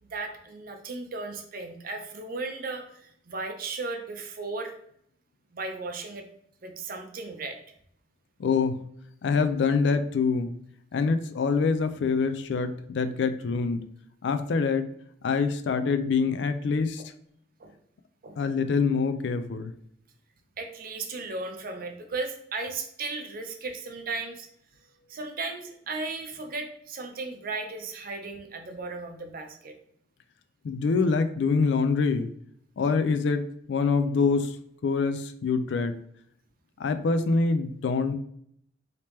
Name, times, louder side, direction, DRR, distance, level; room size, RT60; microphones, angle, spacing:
voice 1, 0.0-4.7 5.5-6.3 6.6-7.6 17.6-17.7 18.2-18.4 20.6-24.5 25.1-29.7, right 3 dB, 50° right, 5 dB, 0.6 m, -36 dB
voice 2, 8.4-8.8 9.2-10.5 10.9-13.8 14.2-14.9 15.2-17.0 18.4-19.7 30.6-32.3 32.8-33.4 33.7-34.5 34.8-35.9 36.8-38.1, left 4 dB, 65° left, 9 dB, 0.4 m, -25 dB
3.3 x 2.9 x 3.0 m, 0.69 s
head